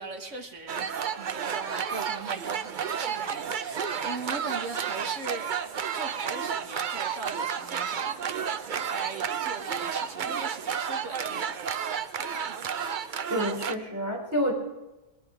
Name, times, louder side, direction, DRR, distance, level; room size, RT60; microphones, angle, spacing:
voice 1, 0.0-5.5 5.9-13.2 13.7-13.8, right 3 dB, 50° right, 1.7 m, -40 dB
sound 1, 0.7-13.7, right 7 dB, 85° right, 0.4 m, -31 dB
voice 2, 13.3-14.5, equal, 10° right, 3.5 m, -28 dB
20.0 x 10.5 x 5.0 m
omnidirectional pair, 1.6 m